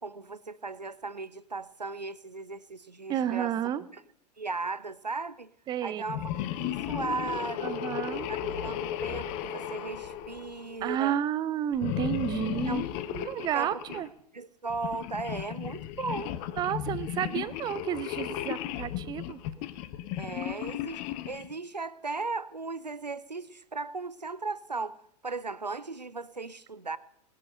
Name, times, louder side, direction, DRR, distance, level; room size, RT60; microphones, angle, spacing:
voice 1, 0.0-3.5 3.9-4.0 4.4-5.5 5.8-7.8 8.3-11.2 12.7-12.8 13.4-14.0 14.3-16.4 20.2-27.0, right 3 dB, 90° right, 17 dB, 0.6 m, -37 dB
voice 2, 3.1-3.8 5.7-6.0 7.6-8.3 10.8-12.8 13.1-14.1 16.6-19.4, right 10 dB, 20° right, 17 dB, 0.6 m, -31 dB
sound 1, 6.0-10.9 11.7-14.1 14.7-21.5, left 11 dB, 35° left, 1.0 m, -35 dB
18.5 x 9.6 x 6.7 m, 0.70 s
figure-of-eight pair, 100°, 21 cm